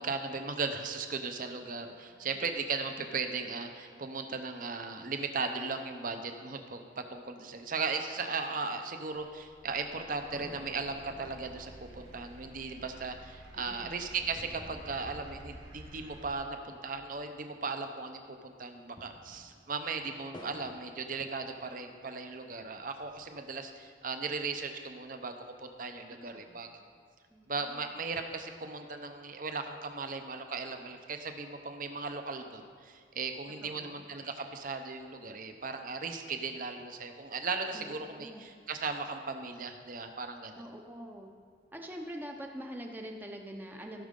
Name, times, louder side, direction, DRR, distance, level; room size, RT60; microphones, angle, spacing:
voice 1, 0.0-26.7 27.5-40.6, right 4 dB, 50° right, 6 dB, 0.7 m, -37 dB
voice 2, 1.9-2.5 13.5-14.0 26.1-26.8 27.3-27.9 33.6-34.1 37.7-38.4 40.5-41.3 41.7-44.1, equal, 10° right, 2 dB, 0.6 m, -45 dB
sound 1, 9.3-16.3, right 1 dB, 75° right, 1.9 m, -52 dB
sound 2, 10.3-17.9 18.2-18.3 18.7-22.1 22.6-23.6, left 1 dB, 25° left, 0.9 m, -54 dB
16.0 x 6.2 x 3.8 m, 2.1 s
head